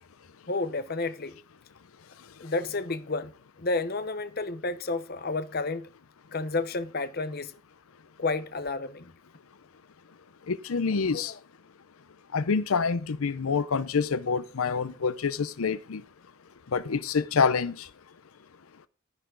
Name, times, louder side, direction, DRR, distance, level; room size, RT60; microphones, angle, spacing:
voice 1, 0.5-1.3 2.4-3.3 3.6-5.9 6.3-7.5 8.2-9.1 11.1-11.4, left 3 dB, 45° left, 0.9 m, -31 dB
voice 2, 10.5-11.3 12.3-16.0 16.7-17.9, left 5 dB, 80° left, 0.6 m, -27 dB
12.5 x 10.5 x 3.8 m
head